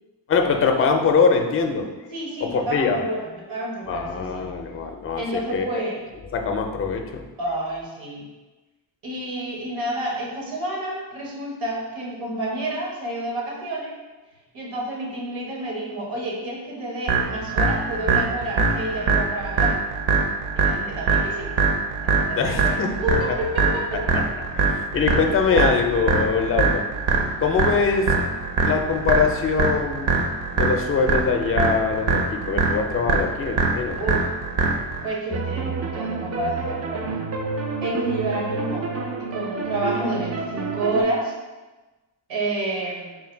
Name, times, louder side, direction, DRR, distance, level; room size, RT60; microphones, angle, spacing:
voice 1, 0.3-1.9 2.4-3.0 3.8-5.2 5.5-5.7 6.3-7.2 22.4-22.9 24.1-24.2 24.6-26.8 27.4-28.1 28.6-30.2 30.5-34.2, left 5 dB, 30° left, 4 dB, 0.4 m, -23 dB
voice 2, 2.1-4.4 5.2-6.0 7.4-8.2 9.0-14.0 14.5-19.8 20.5-21.5 22.0-24.0 33.1-33.2 34.0-34.3 35.0-37.2 37.8-38.9 39.2-41.3 42.3-43.2, right 1 dB, 85° right, -3 dB, 1.3 m, -29 dB
sound 1, 17.1-35.1, right 4 dB, 65° right, 0.8 m, -23 dB
sound 2, 35.3-41.0, right 4 dB, 35° right, 0.4 m, -29 dB
3.9 x 2.2 x 4.4 m, 1.2 s
cardioid pair, 105°, 45 cm